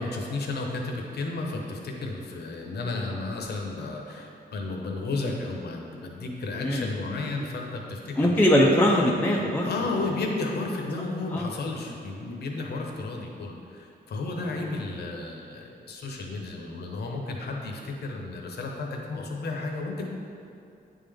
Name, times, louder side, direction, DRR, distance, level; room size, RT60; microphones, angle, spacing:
voice 1, 0.0-8.4 9.6-20.1, left 3 dB, 70° left, 1 dB, 0.8 m, -33 dB
voice 2, 8.2-9.7 11.0-11.1 11.3-11.5, equal, 10° left, -2 dB, 0.3 m, -21 dB
9.2 x 3.7 x 3.4 m, 2.6 s
wide cardioid pair, 180°, 18 cm